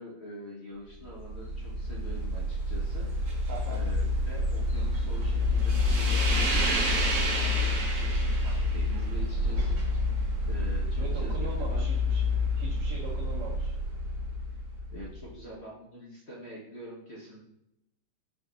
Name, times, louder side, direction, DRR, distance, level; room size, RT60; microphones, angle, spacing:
voice 1, 0.0-3.3 3.7-9.9 10.4-11.9 14.9-17.4, equal, 50° left, -4 dB, 0.9 m, -45 dB
sound 1, 1.0-15.2, left 2 dB, 55° right, 1.1 m, -28 dB
voice 2, 3.5-3.8 11.0-13.7, right 3 dB, 75° right, -6 dB, 1.4 m, -41 dB
4.9 x 2.6 x 3.7 m, 0.83 s
omnidirectional pair, 1.8 m